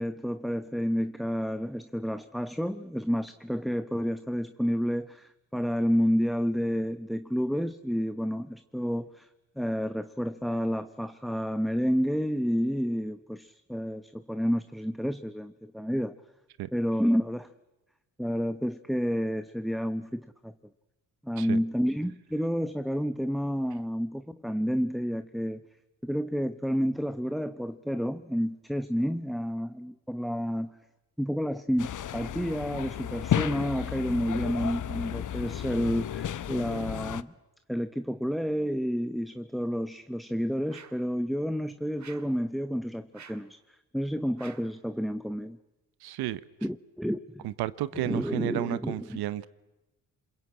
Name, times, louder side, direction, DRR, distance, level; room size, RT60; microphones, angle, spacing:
voice 1, 0.0-9.3 9.6-16.1 16.7-17.5 18.2-20.5 21.2-25.6 26.0-30.8 31.2-37.3 37.7-45.6 46.6-47.5 47.9-49.2, equal, ahead, 0.9 m, -30 dB
sound 1, 31.8-37.2, left 10 dB, 55° left, 0.9 m, -33 dB
sound 2, 40.7-41.1 42.0-42.4 43.1-43.5 44.4-44.8, right 6 dB, 50° right, 2.0 m, -50 dB
voice 2, 46.0-46.4 47.4-49.5, right 14 dB, 90° right, 0.9 m, -32 dB
27.0 x 22.0 x 8.7 m
cardioid pair, 70°, 37 cm